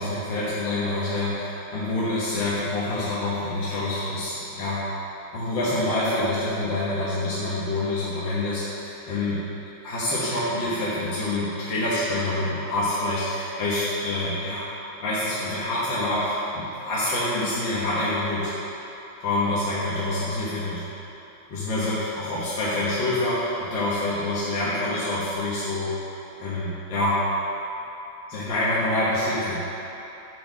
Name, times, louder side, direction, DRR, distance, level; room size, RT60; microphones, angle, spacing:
voice 1, 0.0-4.8 5.3-9.4 9.8-14.6 15.0-18.5 19.2-20.8 21.5-25.9 26.4-27.2 28.3-29.6, left 2 dB, 65° left, -10 dB, 2.1 m, -26 dB
10.0 x 4.2 x 6.5 m, 3.0 s
omnidirectional pair, 2.3 m